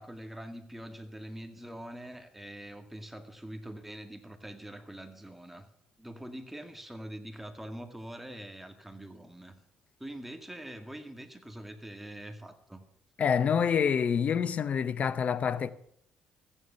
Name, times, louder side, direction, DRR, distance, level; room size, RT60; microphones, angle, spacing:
voice 1, 0.0-5.7 6.0-9.5 10.0-12.8, right 1 dB, 5° right, 2.1 m, -44 dB
voice 2, 13.2-15.7, left 7 dB, 50° left, 0.8 m, -27 dB
14.5 x 10.0 x 5.9 m
supercardioid pair, 70°, 3 cm